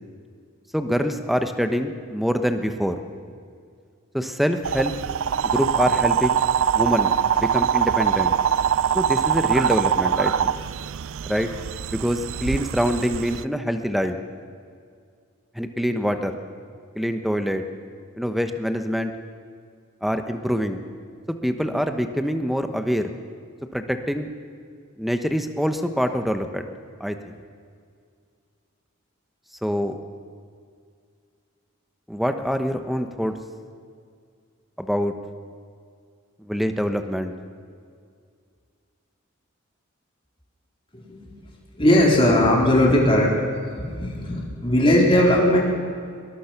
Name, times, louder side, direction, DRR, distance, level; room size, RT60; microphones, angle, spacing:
voice 1, 0.7-2.9 4.1-4.9 5.4-6.4 6.7-8.3 8.9-10.5 11.2-11.5 11.9-14.2 15.5-16.4 16.9-17.6 18.1-19.1 20.0-20.8 21.3-23.1 23.7-24.3 25.0-26.7 27.0-27.2 29.6-30.0 32.1-33.3 34.8-35.1 36.4-37.3, equal, ahead, 7 dB, 1.1 m, -25 dB
sound 1, 4.6-13.4, right 8 dB, 70° right, 0.4 m, -23 dB
voice 2, 40.9-41.3 41.7-43.3 43.8-45.6, left 1 dB, 25° left, -2 dB, 4.1 m, -18 dB
22.0 x 21.0 x 6.0 m, 2.2 s
head